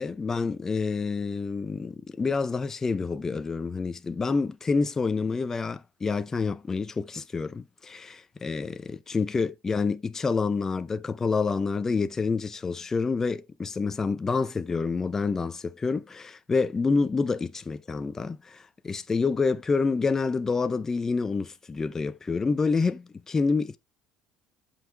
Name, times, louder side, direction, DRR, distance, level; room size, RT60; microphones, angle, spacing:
voice 1, 0.0-23.8, left 4 dB, 20° left, 0.6 m, -28 dB
8.2 x 5.7 x 3.4 m
cardioid pair, 130°, 2 cm